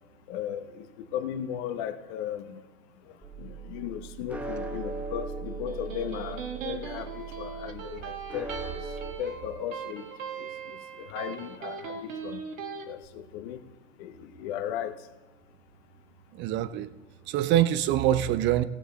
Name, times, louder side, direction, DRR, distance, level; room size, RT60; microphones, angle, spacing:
voice 1, 0.3-0.9 1.1-2.6 3.4-8.8 9.2-10.1 10.4-12.4 12.8-13.6 14.0-15.0, left 10 dB, 50° left, 9 dB, 1.2 m, -36 dB
sound 1, 3.2-9.1, right 4 dB, 5° right, 0.9 m, -39 dB
Electric guitar, 5.5-12.9, right 6 dB, 75° right, 1.6 m, -39 dB
voice 2, 16.4-16.9 17.3-18.6, right 12 dB, 30° right, 15 dB, 0.5 m, -24 dB
17.0 x 7.2 x 3.9 m, 1.3 s
hypercardioid pair, 100°, 40 cm